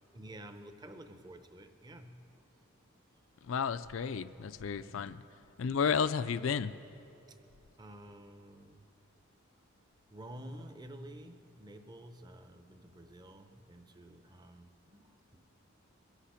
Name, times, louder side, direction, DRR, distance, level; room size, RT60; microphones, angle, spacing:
voice 1, 0.1-2.4 4.4-5.1 7.3-7.4 7.8-8.9 10.1-15.4, right 1 dB, 20° right, 7 dB, 0.7 m, -51 dB
voice 2, 3.4-5.2 5.6-6.7, left 6 dB, 75° left, 14 dB, 0.4 m, -32 dB
23.0 x 8.5 x 5.0 m, 2.7 s
head